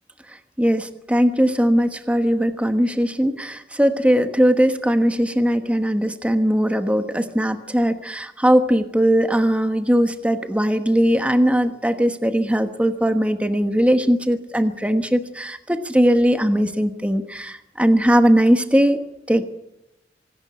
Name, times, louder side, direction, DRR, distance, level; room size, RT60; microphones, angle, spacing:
voice 1, 0.3-19.0 19.3-19.5, equal, 10° right, 8 dB, 1.2 m, -19 dB
25.0 x 12.5 x 9.8 m, 0.89 s
head